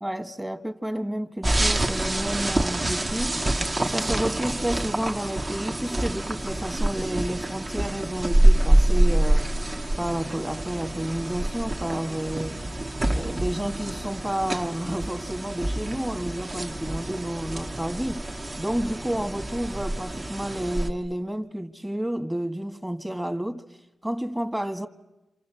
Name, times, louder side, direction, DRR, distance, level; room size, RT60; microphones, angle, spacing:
voice 1, 0.0-3.5 3.8-9.7 10.0-12.6 13.1-23.6 24.0-24.9, right 1 dB, 10° right, 2.1 m, -30 dB
sound 1, 1.4-20.9, right 1 dB, 30° right, 1.9 m, -26 dB
28.5 x 27.5 x 7.4 m
cardioid pair, 70°, 0 cm